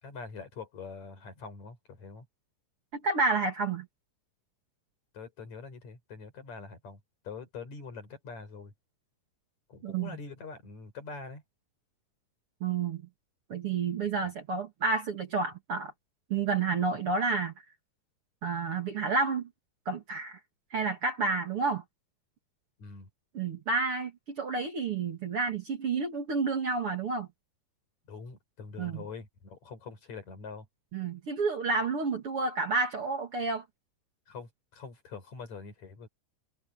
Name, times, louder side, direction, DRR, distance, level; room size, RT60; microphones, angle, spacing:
voice 1, 0.0-2.3 5.1-8.7 9.7-11.4 22.8-23.1 28.1-30.7 34.3-36.1, left 4 dB, 50° left, 6.0 m, -44 dB
voice 2, 2.9-3.9 9.8-10.1 12.6-13.0 13.5-15.9 16.3-17.5 18.4-19.5 19.9-20.4 20.7-21.8 23.3-27.3 28.8-29.0 30.9-33.6, right 4 dB, 45° right, 2.6 m, -30 dB
omnidirectional pair, 4.0 m